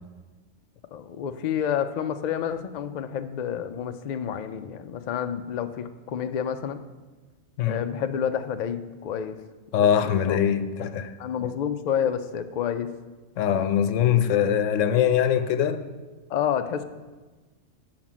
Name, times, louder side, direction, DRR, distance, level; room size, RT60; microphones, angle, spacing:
voice 1, 0.9-6.8 7.7-9.4 9.8-10.4 11.2-12.9 16.3-16.8, left 8 dB, 70° left, 0.4 m, -29 dB
voice 2, 9.7-11.1 13.4-15.8, left 9 dB, 85° left, 0.9 m, -22 dB
7.3 x 5.0 x 6.1 m
omnidirectional pair, 1.3 m